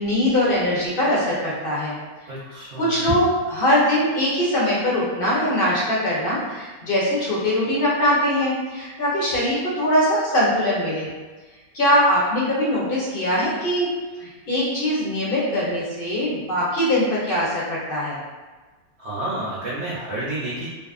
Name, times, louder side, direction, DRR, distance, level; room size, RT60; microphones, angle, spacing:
voice 1, 0.0-2.0 2.8-11.1 11.7-13.9 14.2-18.2, equal, 50° left, -6 dB, 0.6 m, -22 dB
voice 2, 2.3-3.0 19.0-20.7, right 1 dB, 75° right, -8 dB, 0.6 m, -30 dB
2.6 x 2.4 x 2.4 m, 1.3 s
omnidirectional pair, 1.7 m